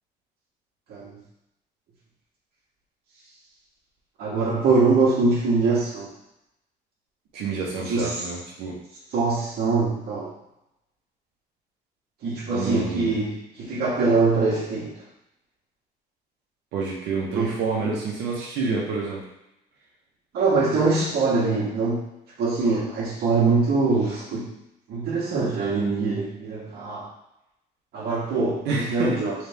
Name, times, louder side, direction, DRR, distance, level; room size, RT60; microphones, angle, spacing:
voice 1, 4.2-6.1 7.8-8.2 9.1-10.3 12.2-14.9 17.3-17.5 20.3-22.0 22.4-24.5 24.9-27.1 27.9-29.3, right 3 dB, 70° right, -4 dB, 1.4 m, -23 dB
voice 2, 7.3-8.8 12.5-13.2 16.7-19.2 28.6-29.2, right 4 dB, 85° right, -2 dB, 1.2 m, -28 dB
3.5 x 3.4 x 3.5 m, 0.85 s
cardioid pair, 110°, 17 cm